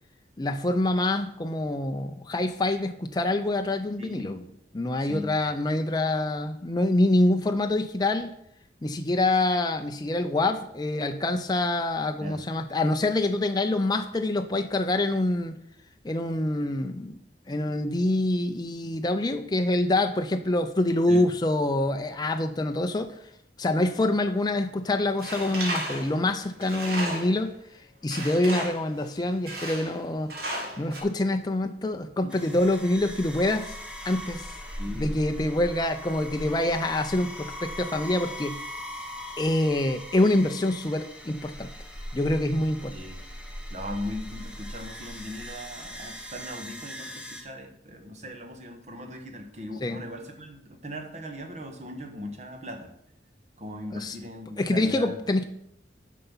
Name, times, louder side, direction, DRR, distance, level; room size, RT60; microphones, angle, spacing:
voice 1, 0.4-4.4 4.7-8.3 8.8-15.6 16.0-17.2 17.5-23.2 23.6-27.5 28.0-30.3 30.8-33.8 34.0-34.5 34.9-38.6 39.4-41.7 42.1-43.0 49.8-50.0 54.0-54.2 54.6-55.4, left 1 dB, 25° left, 6 dB, 0.5 m, -26 dB
voice 2, 4.0-4.4 5.0-5.4 12.2-12.4 21.1-21.2 32.2-32.4 34.8-35.1 42.9-43.2 43.7-52.9 53.6-55.2, left 1 dB, 40° right, 4 dB, 1.5 m, -38 dB
Tools, 25.2-27.5 28.1-28.9 29.5-30.0 30.3-31.0, right 1 dB, 60° right, 2.4 m, -34 dB
sound 1, 32.3-47.4, equal, 5° right, 1.2 m, -40 dB
9.2 x 5.6 x 5.6 m, 0.73 s
head